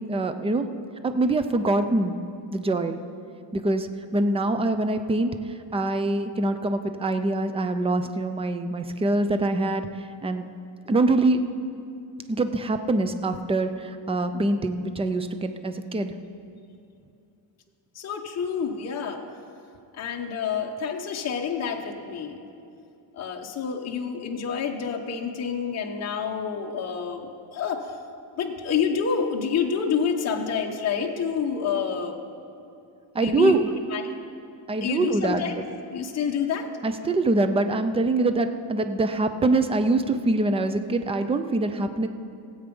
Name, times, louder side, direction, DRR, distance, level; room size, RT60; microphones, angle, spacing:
voice 1, 0.1-0.8 1.0-2.2 2.5-3.0 3.5-3.9 4.1-5.3 5.7-9.9 10.2-10.5 10.9-11.4 12.3-16.1 33.1-33.7 34.7-35.4 36.8-42.1, right 2 dB, 15° right, 9 dB, 0.3 m, -24 dB
voice 2, 17.9-19.2 19.9-22.4 23.1-27.9 28.4-32.2 33.2-34.1 34.8-35.6 35.9-36.7, left 6 dB, 35° left, 2 dB, 0.9 m, -28 dB
17.0 x 8.0 x 5.3 m, 2.6 s
cardioid pair, 155°, 46 cm